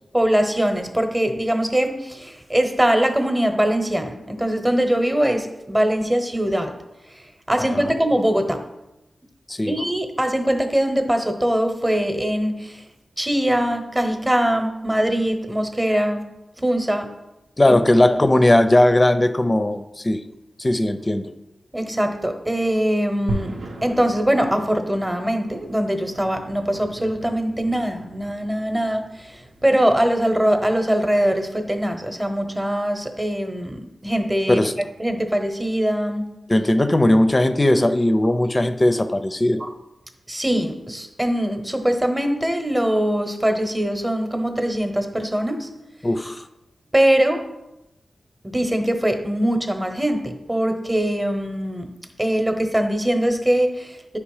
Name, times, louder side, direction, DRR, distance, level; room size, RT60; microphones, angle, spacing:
voice 1, 0.1-6.7 7.1-8.6 9.7-12.8 13.2-16.2 16.6-17.1 17.7-17.8 21.7-23.5 23.8-34.6 35.0-36.2 39.6-39.7 40.3-45.7 46.9-47.4 48.4-51.9 52.2-54.2, right 1 dB, 15° right, 6 dB, 0.9 m, -22 dB
voice 2, 7.6-7.9 9.5-9.7 17.6-20.2 20.6-21.3 34.5-34.7 36.5-39.6 46.0-46.4, left 1 dB, 25° left, 9 dB, 0.5 m, -18 dB
sound 1, 23.3-33.5, right 1 dB, 75° right, 0.9 m, -39 dB
9.1 x 3.3 x 4.8 m, 0.93 s
cardioid pair, 65°, 0 cm